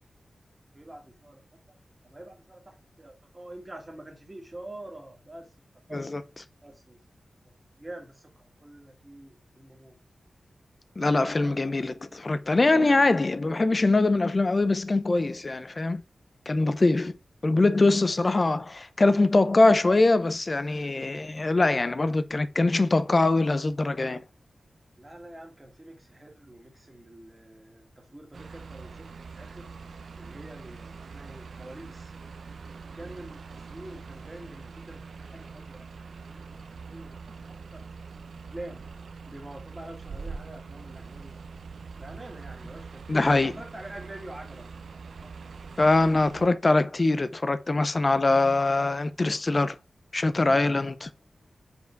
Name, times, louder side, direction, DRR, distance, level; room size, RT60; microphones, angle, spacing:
voice 1, 0.7-1.8 2.0-5.5 5.9-6.0 6.6-7.0 7.4-10.0 11.1-11.4 25.0-29.7 30.2-32.1 32.9-37.9 38.5-38.8 39.3-41.4 42.0-44.7 45.2-46.2, right 1 dB, 20° right, 2.0 m, -46 dB
voice 2, 11.0-16.0 16.5-17.2 17.4-24.2 43.1-43.5 45.8-49.8 50.1-51.1, left 2 dB, 35° left, 0.6 m, -23 dB
sound 1, 28.3-46.5, right 5 dB, 80° right, 0.6 m, -43 dB
5.4 x 4.8 x 4.5 m
wide cardioid pair, 125°, 0 cm